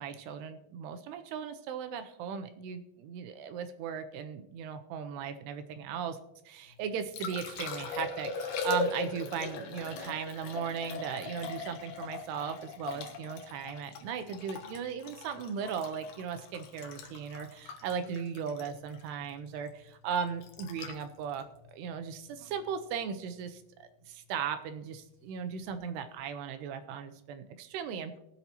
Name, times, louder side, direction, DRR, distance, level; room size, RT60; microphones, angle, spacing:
voice 1, 0.0-6.2 6.5-23.6 24.1-28.2, right 7 dB, 80° right, 8 dB, 2.6 m, -37 dB
Liquid, 6.7-22.8 25.6-25.8, left 4 dB, 70° left, 3.0 m, -40 dB
21.5 x 8.1 x 2.9 m, 0.88 s
omnidirectional pair, 5.1 m